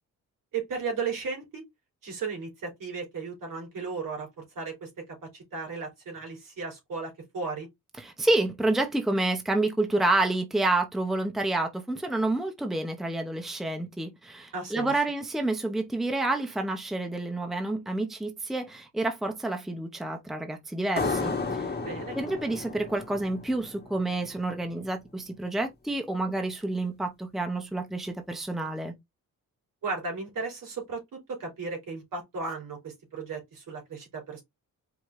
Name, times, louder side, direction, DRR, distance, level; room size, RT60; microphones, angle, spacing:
voice 1, 0.5-1.6 2.0-4.9 5.2-7.7 14.5-14.9 21.8-22.2 29.8-34.4, right 4 dB, 65° right, 3.1 m, -35 dB
voice 2, 8.0-21.7 22.1-28.9, right 2 dB, ahead, 0.7 m, -29 dB
sound 1, 21.0-24.3, left 3 dB, 30° left, 1.4 m, -33 dB
4.9 x 2.8 x 3.6 m
cardioid pair, 95°, 35 cm